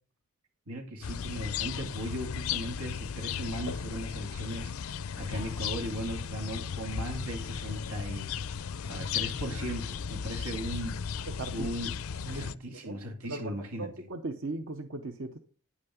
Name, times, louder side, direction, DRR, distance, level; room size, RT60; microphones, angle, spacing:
voice 1, 0.7-8.3 8.8-11.0 11.5-12.0 12.3-14.1, equal, 90° right, 2.0 m, -38 dB
sound 1, 1.0-12.5, left 7 dB, 70° left, 0.4 m, -35 dB
voice 2, 11.3-11.7 12.2-13.0 13.2-15.4, right 2 dB, 60° right, 0.8 m, -38 dB
9.7 x 8.4 x 3.7 m
head